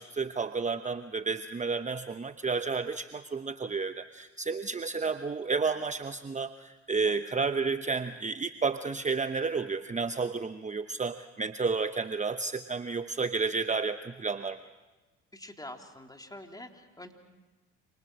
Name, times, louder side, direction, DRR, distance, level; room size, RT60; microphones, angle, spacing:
voice 1, 0.0-14.6, right 4 dB, 20° right, 10 dB, 1.0 m, -31 dB
voice 2, 15.3-17.1, left 1 dB, 10° left, 3 dB, 3.6 m, -46 dB
28.0 x 28.0 x 6.4 m, 1.2 s
hypercardioid pair, 65°, 34 cm